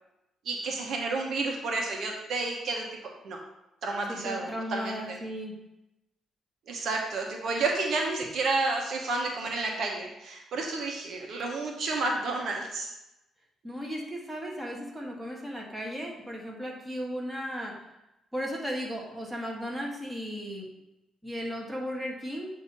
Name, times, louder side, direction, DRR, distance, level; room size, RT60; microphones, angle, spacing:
voice 1, 0.4-2.9 3.2-3.4 3.8-5.2 6.7-12.9, right 3 dB, 65° right, 1 dB, 1.1 m, -31 dB
voice 2, 4.1-5.6 13.6-17.8 18.3-20.7 21.2-22.5, equal, 10° right, -1 dB, 1.6 m, -35 dB
7.9 x 2.8 x 5.4 m, 0.91 s
cardioid pair, 90°, 0 cm